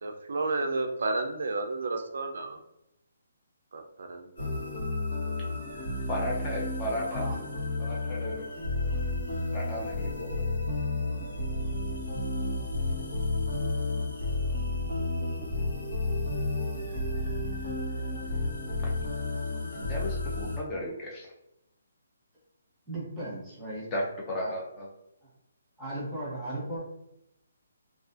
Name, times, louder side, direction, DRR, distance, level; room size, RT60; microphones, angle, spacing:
voice 1, 0.0-2.6 3.7-4.5, right 3 dB, 70° right, 5 dB, 0.3 m, -32 dB
sound 1, 4.4-20.6, left 2 dB, 75° left, 1.1 m, -31 dB
voice 2, 6.1-7.3 7.8-8.5 9.5-10.3 19.7-21.3 23.9-24.9, left 1 dB, 20° left, -3 dB, 0.4 m, -34 dB
voice 3, 7.1-7.4 22.9-23.8 24.4-24.5 25.8-26.8, right 1 dB, 5° right, -8 dB, 0.9 m, -36 dB
2.4 x 2.4 x 2.4 m, 0.84 s
hypercardioid pair, 165°, 0 cm